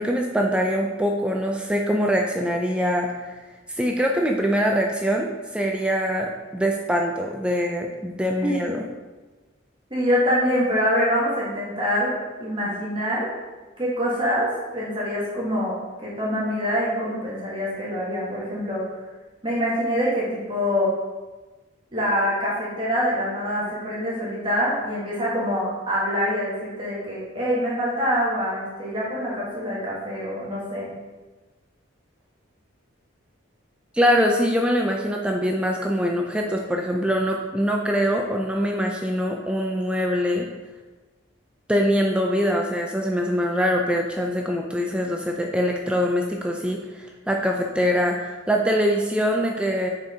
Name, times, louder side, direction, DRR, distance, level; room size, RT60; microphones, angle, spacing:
voice 1, 0.0-3.4 3.7-8.8 33.9-40.5 41.7-49.9, equal, 5° right, 1 dB, 0.3 m, -23 dB
voice 2, 9.9-13.3 13.8-18.8 19.4-20.9 21.9-30.9, equal, 25° right, -7 dB, 1.5 m, -25 dB
6.1 x 4.4 x 3.6 m, 1.2 s
head